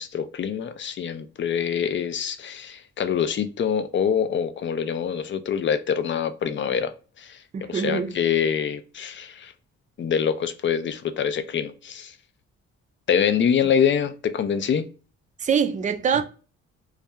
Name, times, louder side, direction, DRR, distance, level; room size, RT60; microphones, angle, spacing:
voice 1, 0.0-9.5 10.0-12.1 13.1-14.9, left 7 dB, 40° left, 0.4 m, -25 dB
voice 2, 7.5-8.2 15.4-16.2, right 7 dB, 25° right, 0.4 m, -24 dB
2.3 x 2.2 x 2.8 m
cardioid pair, 90°, 30 cm